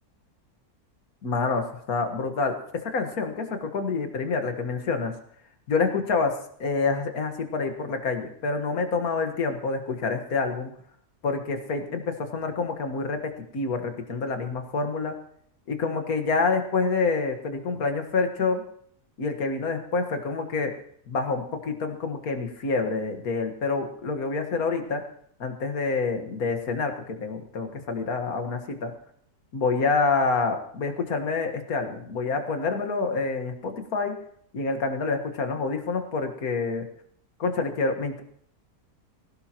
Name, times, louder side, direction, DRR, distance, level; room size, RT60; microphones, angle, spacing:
voice 1, 1.2-5.2 5.7-10.7 11.2-15.2 15.7-18.6 19.2-20.7 21.1-25.1 25.4-28.9 29.5-34.2 34.5-36.9 37.4-38.2, left 4 dB, 70° left, 5 dB, 2.0 m, -27 dB
20.0 x 16.5 x 3.0 m, 0.64 s
omnidirectional pair, 1.6 m